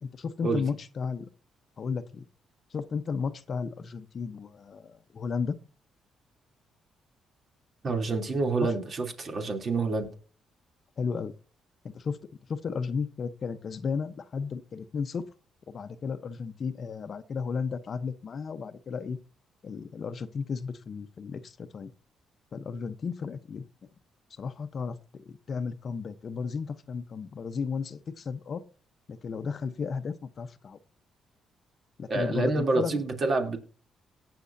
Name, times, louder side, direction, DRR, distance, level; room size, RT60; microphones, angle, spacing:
voice 1, 0.0-1.3 1.8-2.2 2.7-5.6 8.6-8.7 11.0-11.3 11.8-12.2 12.5-15.2 15.7-19.2 19.6-21.9 22.5-23.6 24.4-28.6 29.1-30.8 32.0-33.0, left 5 dB, 50° left, 11 dB, 0.9 m, -34 dB
voice 2, 7.8-10.1 32.1-33.6, right 3 dB, 45° right, 3 dB, 3.0 m, -28 dB
18.0 x 6.9 x 2.7 m, 0.37 s
cardioid pair, 90°, 0 cm